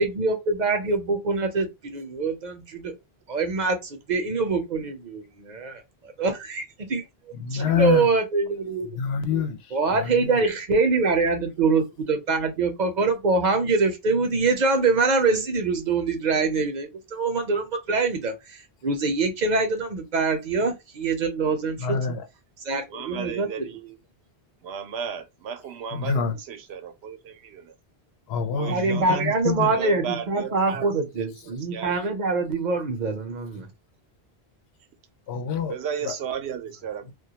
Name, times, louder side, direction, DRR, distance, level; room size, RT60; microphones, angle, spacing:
voice 1, 0.0-2.9 3.3-5.8 6.2-7.0 7.5-8.9 9.7-22.0 22.6-23.5 28.5-33.7, right 4 dB, 50° right, 0.6 m, -24 dB
voice 2, 7.4-8.1 9.0-9.6 9.9-10.3 21.8-22.2 25.9-26.3 28.3-29.7 35.3-35.7 36.1-36.2, left 6 dB, 80° left, 0.8 m, -26 dB
voice 3, 22.9-24.0 24.6-27.7 28.5-29.2 29.6-30.9 31.2-32.2 35.7-37.1, right 7 dB, 85° right, 0.8 m, -34 dB
2.2 x 2.2 x 2.8 m
omnidirectional pair, 1.1 m